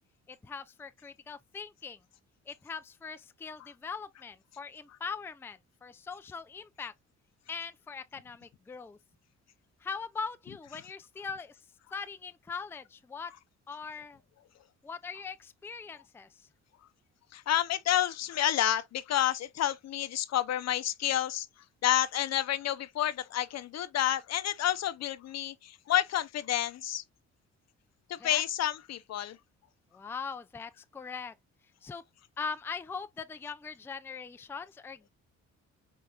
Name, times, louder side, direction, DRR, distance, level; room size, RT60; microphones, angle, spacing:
voice 1, 0.3-2.0 2.5-6.9 7.5-9.0 9.8-11.6 11.9-13.3 13.7-14.2 14.8-16.5 28.2-28.4 29.9-31.3 31.8-32.0 32.4-35.1, left 5 dB, 10° left, 0.4 m, -41 dB
voice 2, 17.3-21.5 21.8-27.0 28.1-29.4, left 12 dB, 60° left, 0.6 m, -29 dB
4.5 x 3.5 x 2.4 m
cardioid pair, 90°, 30 cm